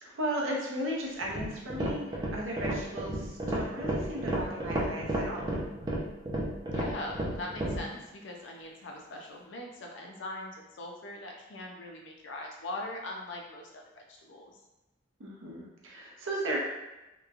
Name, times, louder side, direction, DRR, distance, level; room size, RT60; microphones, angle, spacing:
voice 1, 0.0-5.5 15.2-16.6, right 1 dB, 90° right, -2 dB, 0.7 m, -36 dB
sound 1, 1.2-7.9, right 1 dB, 20° right, 0.4 m, -32 dB
voice 2, 6.7-14.5, left 1 dB, 65° left, 1 dB, 0.5 m, -41 dB
2.9 x 2.2 x 2.4 m, 1.0 s
head